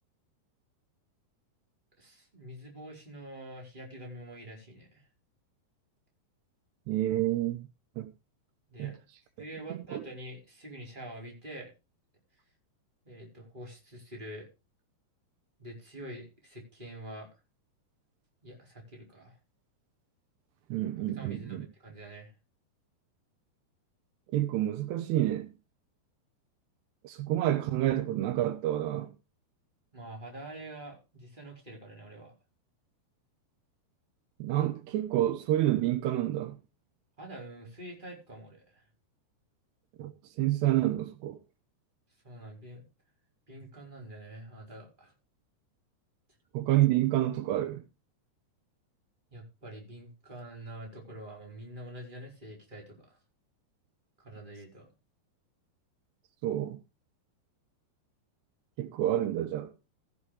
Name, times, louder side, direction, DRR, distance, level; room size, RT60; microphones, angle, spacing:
voice 1, 2.0-5.0 8.7-9.0 9.4-11.7 13.0-14.5 15.6-17.3 18.4-19.3 21.1-22.3 29.9-32.3 37.2-38.8 42.2-42.9 43.5-45.1 49.3-53.1 54.2-54.9, right 1 dB, 10° right, 4.5 m, -46 dB
voice 2, 6.9-7.7 8.0-8.1 8.8-9.0 9.7-10.0 20.7-21.7 24.3-25.5 27.0-29.1 34.4-36.6 40.0-40.1 40.4-41.4 46.5-47.8 56.4-56.8 58.8-59.7, right 14 dB, 80° right, 3.1 m, -28 dB
15.5 x 6.8 x 4.9 m
omnidirectional pair, 4.8 m